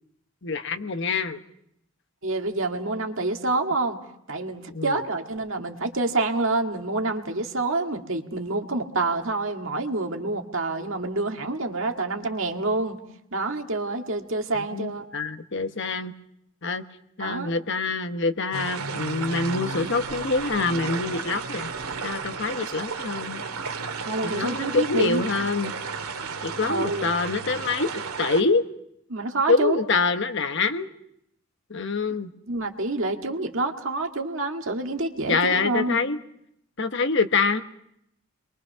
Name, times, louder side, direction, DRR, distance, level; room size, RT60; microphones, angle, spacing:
voice 1, 0.4-1.4 4.7-5.0 14.5-16.1 16.6-16.8 17.2-21.7 22.0-23.4 24.2-25.7 26.4-27.9 28.2-28.6 29.5-30.9 31.7-32.3 35.3-36.2 36.8-37.6, left 4 dB, 55° left, 9 dB, 1.1 m, -25 dB
voice 2, 2.2-4.0 4.3-13.0 13.3-15.0 17.2-17.5 22.6-22.7 24.1-25.2 26.7-27.1 29.1-29.8 32.5-36.0, right 2 dB, 60° right, 3 dB, 2.0 m, -27 dB
sound 1, 18.5-28.4, right 5 dB, 90° right, 2.2 m, -33 dB
30.0 x 23.0 x 5.7 m, 0.75 s
head